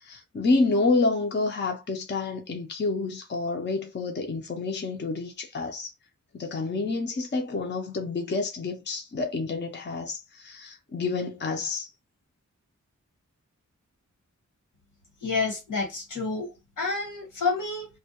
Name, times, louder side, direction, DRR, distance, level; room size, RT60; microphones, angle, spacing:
voice 1, 0.0-5.9 6.3-11.9, left 3 dB, 35° left, 0.5 m, -28 dB
voice 2, 15.2-16.5 16.8-17.9, left 4 dB, 85° left, 1.2 m, -29 dB
2.2 x 2.2 x 2.7 m
wide cardioid pair, 75°, 30 cm